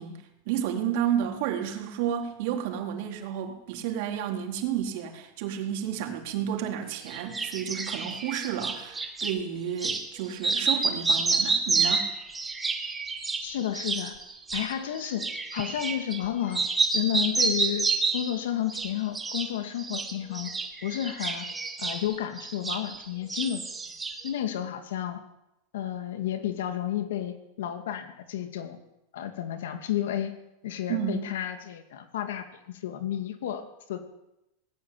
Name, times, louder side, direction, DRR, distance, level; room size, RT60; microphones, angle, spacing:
voice 1, 0.0-12.1 30.9-31.3, right 9 dB, 55° right, 3 dB, 3.9 m, -31 dB
sound 1, 7.1-9.4 9.8-10.1 10.4-16.3 16.5-18.4 18.7-19.5 19.8-23.0 23.3-24.3, right 4 dB, 10° right, 2.0 m, -29 dB
voice 2, 13.4-14.1 14.5-15.3 15.5-16.7 16.9-20.5 20.8-21.5 21.8-23.6 24.2-25.2 25.7-28.8 29.1-30.3 30.6-34.0, left 11 dB, 85° left, 7 dB, 2.6 m, -31 dB
19.0 x 18.0 x 8.8 m, 0.90 s
supercardioid pair, 155°, 0 cm